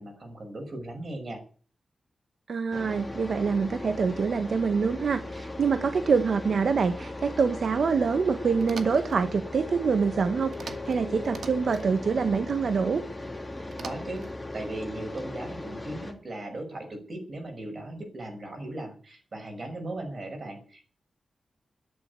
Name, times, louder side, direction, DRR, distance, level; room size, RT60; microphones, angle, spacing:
voice 1, 0.0-1.4 13.6-14.2 14.5-20.8, right 1 dB, 45° right, 4 dB, 5.9 m, -38 dB
voice 2, 2.5-13.0, right 5 dB, 65° right, 10 dB, 1.2 m, -25 dB
sound 1, 2.7-16.1, left 2 dB, 10° left, 3.1 m, -38 dB
sound 2, 8.6-9.2 10.5-11.0 11.2-11.9 13.7-14.3, right 5 dB, 90° right, 2.1 m, -42 dB
13.0 x 11.0 x 8.2 m, 0.43 s
wide cardioid pair, 145°, 0 cm